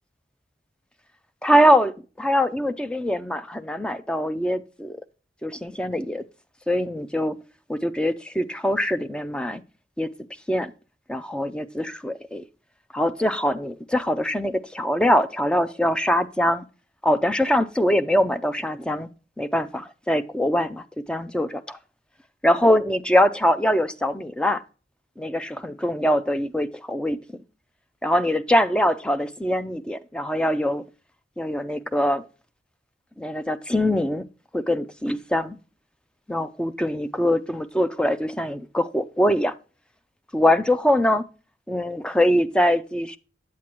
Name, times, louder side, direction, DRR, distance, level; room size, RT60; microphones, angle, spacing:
voice 1, 1.4-5.0 5.4-6.2 6.7-7.4 7.7-9.6 10.0-10.1 10.5-10.7 11.1-12.4 12.9-16.6 17.0-19.1 19.4-21.8 22.4-24.6 25.2-27.2 28.0-30.8 31.4-32.2 33.2-34.2 34.5-35.6 36.3-39.5 40.3-41.2 41.7-43.2, equal, 5° left, 0.3 m, -23 dB
8.4 x 7.4 x 2.9 m
head